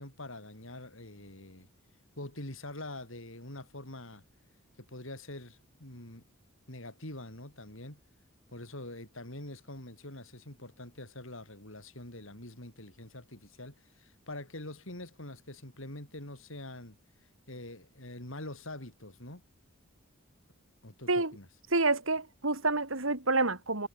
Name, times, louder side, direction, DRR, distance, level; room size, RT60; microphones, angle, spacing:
voice 1, 0.0-1.7 2.2-4.2 4.8-6.2 6.7-8.0 8.5-17.0 17.5-19.4 20.8-21.5, left 1 dB, 70° left, 6.6 m, -45 dB
voice 2, 21.7-23.9, right 3 dB, 70° right, 4.3 m, -28 dB
head